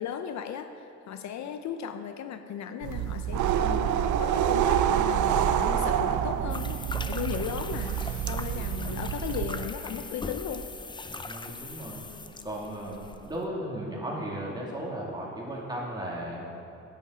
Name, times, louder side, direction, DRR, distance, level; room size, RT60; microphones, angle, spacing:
voice 1, 0.0-10.7, left 8 dB, 65° left, 8 dB, 0.6 m, -36 dB
sound 1, 2.8-9.7, right 9 dB, 75° right, 0.5 m, -27 dB
sound 2, 6.5-13.5, left 3 dB, 15° left, 0.5 m, -40 dB
voice 2, 11.2-12.0 12.4-16.5, right 1 dB, 15° right, -4 dB, 2.6 m, -36 dB
10.5 x 9.5 x 3.9 m, 2.9 s
cardioid pair, 90°, 30 cm